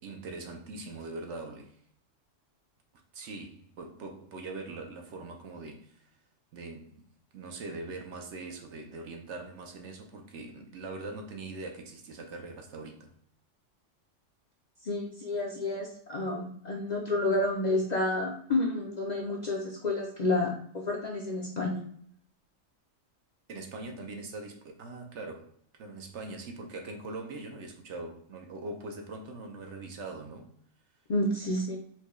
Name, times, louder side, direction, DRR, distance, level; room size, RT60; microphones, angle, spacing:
voice 1, 0.0-1.8 3.1-6.1 6.5-7.0 7.3-13.1 23.5-25.5 25.8-30.5, right 2 dB, 65° right, 0.9 m, -42 dB
voice 2, 14.8-21.8 31.1-31.8, left 2 dB, 45° left, 0.6 m, -30 dB
4.5 x 2.2 x 3.0 m
omnidirectional pair, 1.3 m